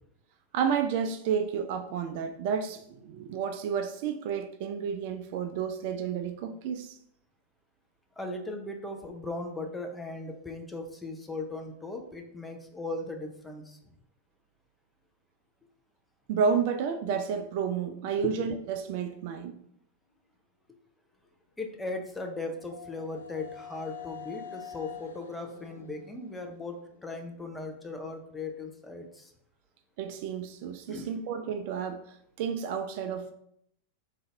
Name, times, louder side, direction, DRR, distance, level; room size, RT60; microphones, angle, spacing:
voice 1, 0.5-7.0 16.3-19.6 30.0-33.3, right 7 dB, 50° right, 0.3 m, -31 dB
voice 2, 8.2-13.8 18.2-18.3 21.6-29.3 30.9-31.1, left 2 dB, 10° left, 0.6 m, -38 dB
sound 1, 21.7-27.6, left 8 dB, 65° left, 0.4 m, -47 dB
3.9 x 2.5 x 3.3 m
figure-of-eight pair, 90°, 0 cm